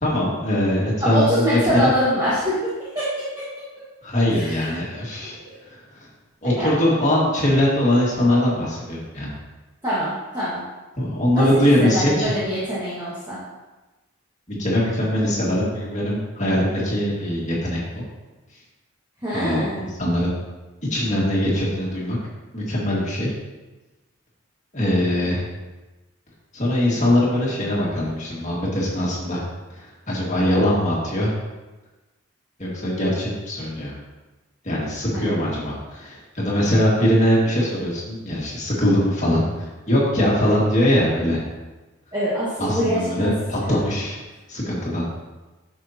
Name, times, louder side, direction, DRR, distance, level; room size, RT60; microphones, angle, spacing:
voice 1, 0.0-1.9 4.0-5.3 5.6-6.1 6.4-9.3 11.0-12.3 14.5-18.1 19.3-20.3 20.9-22.2 22.5-23.3 24.7-25.4 26.5-29.4 29.7-31.3 32.6-33.9 34.6-41.4 42.6-44.2 44.5-45.0, left 1 dB, 35° left, -5 dB, 2.1 m, -22 dB
voice 2, 1.1-2.6 3.0-3.1 4.3-4.7 5.2-5.3 6.6-6.7 9.8-10.6 11.3-13.4 19.2-19.8 35.1-35.3 42.1-43.3 43.7-43.8, equal, 20° right, -11 dB, 1.8 m, -24 dB
10.0 x 6.4 x 3.0 m, 1.2 s
head